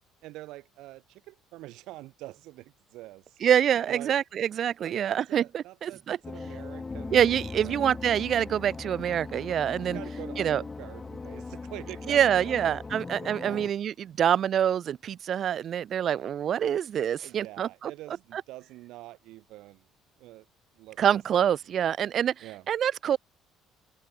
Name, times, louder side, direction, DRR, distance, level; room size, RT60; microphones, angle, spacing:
voice 1, 0.2-3.4 3.9-4.2 4.8-7.2 7.5-7.9 9.8-12.7 13.2-13.6 16.1-16.7 17.1-19.8 20.2-20.5 20.8-21.4 22.4-22.7, right 18 dB, 70° right, 2.4 m, -45 dB
voice 2, 3.4-6.2 7.1-10.0 10.4-10.6 12.1-17.9 18.3-18.4 21.0-23.2, right 9 dB, 55° right, 0.6 m, -26 dB
sound 1, 6.2-13.7, left 3 dB, 25° left, 1.2 m, -39 dB
hypercardioid pair, 65°, 0 cm